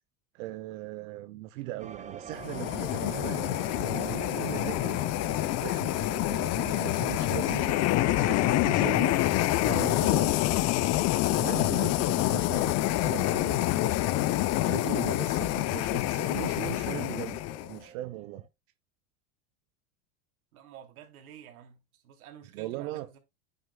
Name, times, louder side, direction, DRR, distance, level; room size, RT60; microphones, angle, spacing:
voice 1, 0.3-5.0 5.6-6.0 6.3-7.8 8.1-10.4 11.3-14.0 14.6-17.4 17.7-18.4 22.5-23.1, right 16 dB, 65° right, 0.9 m, -39 dB
sound 1, 1.8-18.5, right 8 dB, 15° right, 0.7 m, -45 dB
sound 2, 2.4-17.8, left 16 dB, 40° left, 0.6 m, -27 dB
voice 2, 20.5-23.2, right 9 dB, 90° right, 3.4 m, -50 dB
9.7 x 9.5 x 2.3 m
supercardioid pair, 120°, 42 cm